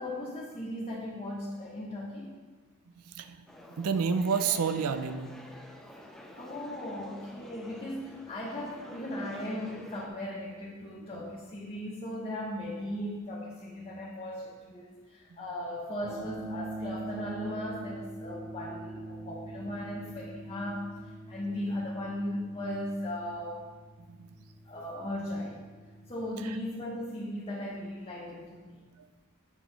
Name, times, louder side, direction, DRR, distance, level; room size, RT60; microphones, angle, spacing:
voice 1, 0.0-2.3 6.3-20.9 21.3-23.6 24.7-25.6 26.1-28.8, left 1 dB, 25° left, -4 dB, 0.8 m, -37 dB
voice 2, 3.1-3.4 3.8-5.3 24.1-24.3 26.4-26.6, right 6 dB, 85° right, 10 dB, 0.4 m, -29 dB
sound 1, 3.5-10.1, equal, ahead, 0.5 m, -49 dB
sound 2, 16.0-26.1, right 1 dB, 35° right, 2.1 m, -43 dB
7.3 x 6.0 x 3.3 m, 1.4 s
head